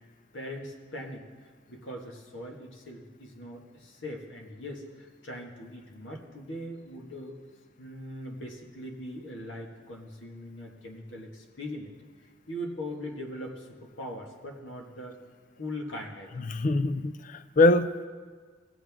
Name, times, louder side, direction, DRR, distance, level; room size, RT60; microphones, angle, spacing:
voice 1, 0.3-1.2 1.7-7.4 7.8-11.9 12.5-15.2 15.6-16.3, left 1 dB, 90° left, 0 dB, 1.7 m, -40 dB
voice 2, 16.5-18.1, left 2 dB, 45° left, 13 dB, 0.4 m, -23 dB
17.5 x 7.6 x 3.6 m, 1.5 s
head